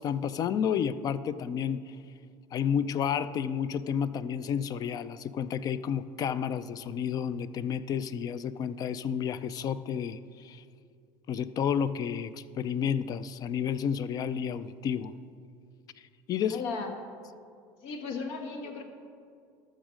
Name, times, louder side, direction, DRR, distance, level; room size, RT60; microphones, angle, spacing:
voice 1, 0.0-1.8 2.5-10.6 11.3-15.1 16.3-16.6, left 8 dB, 40° left, 15 dB, 0.4 m, -31 dB
voice 2, 16.5-16.9 17.8-18.8, left 4 dB, 80° left, 4 dB, 1.4 m, -35 dB
13.5 x 6.4 x 5.1 m, 2.3 s
supercardioid pair, 115°, 9 cm